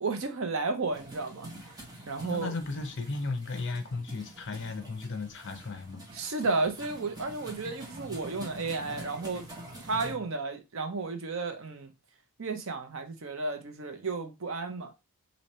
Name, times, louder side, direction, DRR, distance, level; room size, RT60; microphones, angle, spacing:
voice 1, 0.0-1.5 2.1-2.5 6.1-9.4 9.8-11.9 12.4-14.9, right 3 dB, 60° right, 0.7 m, -33 dB
sound 1, 0.9-10.1, right 1 dB, 15° right, 1.0 m, -46 dB
voice 2, 2.2-6.0 10.0-10.2, left 3 dB, 55° left, 0.7 m, -35 dB
3.1 x 2.8 x 4.1 m
head